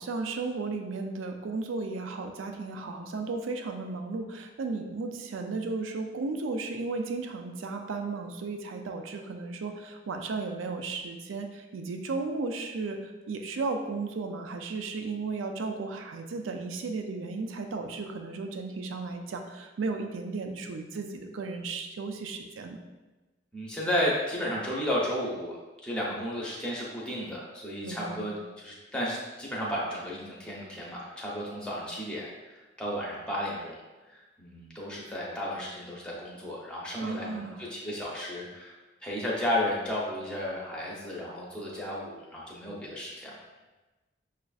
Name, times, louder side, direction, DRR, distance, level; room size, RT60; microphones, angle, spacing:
voice 1, 0.0-22.8 27.8-28.3 37.0-37.6, right 3 dB, 90° right, 5 dB, 0.4 m, -34 dB
voice 2, 23.5-33.8 34.1-38.7 39.0-43.3, left 1 dB, 5° left, -5 dB, 0.6 m, -33 dB
6.0 x 2.4 x 2.3 m, 1.2 s
head